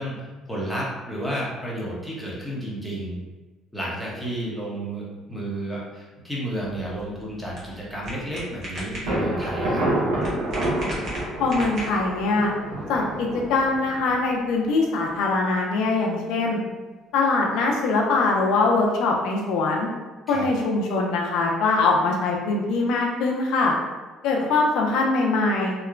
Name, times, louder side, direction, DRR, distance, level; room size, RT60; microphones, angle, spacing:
voice 1, 0.0-3.2 3.7-9.9 20.3-20.5, right 1 dB, ahead, -6 dB, 0.8 m, -31 dB
sound 1, 6.6-12.3, equal, 55° right, 1.0 m, -37 dB
Thunder, 9.1-14.7, right 1 dB, 85° right, 0.9 m, -28 dB
voice 2, 11.4-12.5 12.9-16.6 17.1-19.9 20.3-23.7 24.2-25.7, left 3 dB, 75° left, 0 dB, 0.4 m, -22 dB
2.8 x 2.0 x 2.4 m, 1.3 s
cardioid pair, 90°, 0 cm